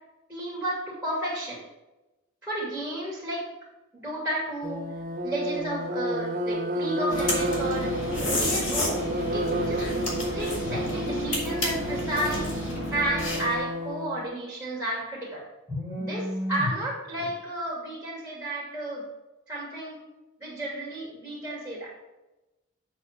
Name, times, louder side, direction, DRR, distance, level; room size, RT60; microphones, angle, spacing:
voice 1, 0.3-1.6 2.4-3.5 3.9-4.9 5.2-7.9 8.3-9.0 9.3-9.8 10.3-12.5 12.9-19.0 19.5-20.0 20.4-21.9, right 1 dB, 5° right, -5 dB, 2.7 m, -32 dB
sound 1, 4.6-14.2, equal, 40° right, 0.7 m, -31 dB
sound 2, 7.1-13.6, left 1 dB, 85° left, 2.5 m, -31 dB
8.0 x 4.3 x 6.6 m, 1.0 s
head